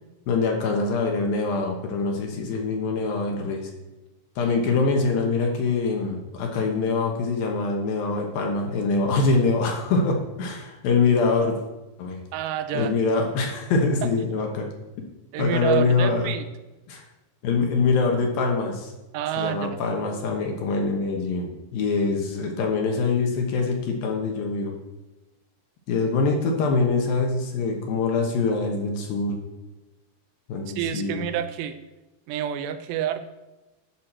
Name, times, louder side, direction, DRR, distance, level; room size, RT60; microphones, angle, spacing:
voice 1, 0.3-3.7 4.4-11.6 12.0-12.2 12.7-14.7 15.4-16.3 16.9-17.0 17.4-18.9 19.4-24.7 25.9-29.4 30.5-31.2, left 4 dB, 70° left, 2 dB, 2.5 m, -24 dB
voice 2, 12.3-12.9 14.0-14.1 15.3-16.5 19.1-19.8 30.7-31.8 32.3-33.3, right 10 dB, 90° right, 10 dB, 2.8 m, -28 dB
11.5 x 6.4 x 4.3 m, 1.1 s
omnidirectional pair, 4.9 m